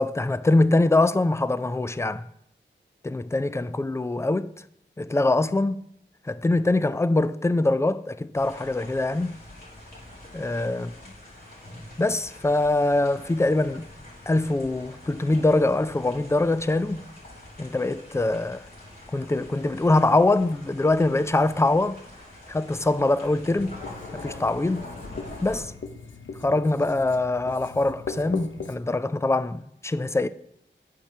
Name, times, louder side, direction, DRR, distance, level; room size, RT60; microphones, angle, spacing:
voice 1, 0.0-2.2 3.0-4.5 5.0-5.8 6.3-9.4 10.3-10.9 12.0-13.9 14.3-17.1 17.6-18.7 19.1-22.0 22.5-23.7 24.1-24.9 25.4-25.7 26.4-30.3, left 2 dB, 15° left, 0.3 m, -23 dB
sound 1, 8.3-25.6, left 1 dB, 50° left, 2.6 m, -45 dB
Writing, 23.2-28.8, left 4 dB, 75° left, 0.7 m, -39 dB
8.9 x 4.4 x 5.6 m
wide cardioid pair, 90°, 20 cm